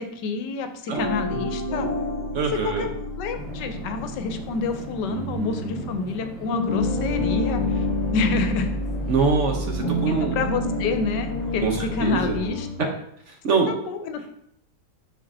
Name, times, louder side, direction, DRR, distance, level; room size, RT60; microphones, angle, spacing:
voice 1, 0.0-1.9 2.6-2.9 3.2-7.9 8.1-8.7 9.8-12.7 13.7-14.3, left 4 dB, 85° left, 8 dB, 1.3 m, -28 dB
sound 1, 0.9-6.2 6.5-12.8, left 1 dB, 35° left, 0.8 m, -29 dB
voice 2, 0.9-1.3 2.3-2.9 5.1-6.0 9.1-10.4 11.6-12.4 12.8-12.9 13.3-13.7, right 5 dB, 55° right, 3 dB, 0.9 m, -25 dB
sound 2, 3.3-12.5, right 1 dB, ahead, 1.0 m, -39 dB
6.7 x 5.6 x 2.6 m, 0.70 s
omnidirectional pair, 1.8 m